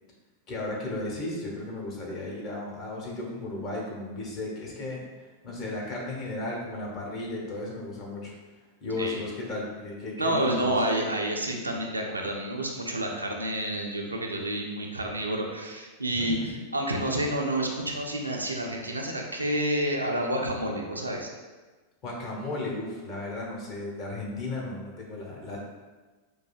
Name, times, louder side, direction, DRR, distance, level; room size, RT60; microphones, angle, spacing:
voice 1, 0.5-8.3 8.8-10.7 16.1-16.6 22.0-25.6, left 2 dB, 35° left, -3 dB, 1.0 m, -35 dB
voice 2, 10.2-16.4 16.7-21.3, right 1 dB, 80° right, 0 dB, 0.4 m, -29 dB
4.7 x 2.6 x 2.3 m, 1.3 s
figure-of-eight pair, 90°, 0 cm